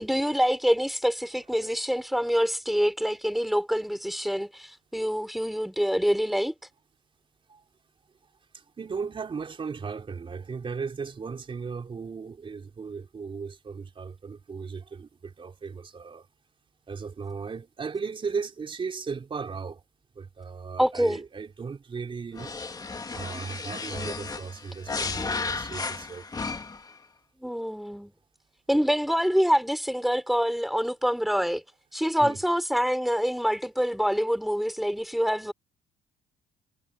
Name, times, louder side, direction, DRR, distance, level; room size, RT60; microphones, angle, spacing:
voice 1, 0.0-6.5 20.8-21.2 27.4-28.1 28.7-31.6 31.9-35.5, equal, ahead, 3.4 m, -26 dB
voice 2, 8.5-16.3 16.9-19.8 20.2-22.5 23.1-26.3 32.2-32.4, right 5 dB, 30° right, 3.9 m, -36 dB
sound 1, 22.3-26.9, left 4 dB, 20° left, 2.2 m, -34 dB
cardioid pair, 110°, 17 cm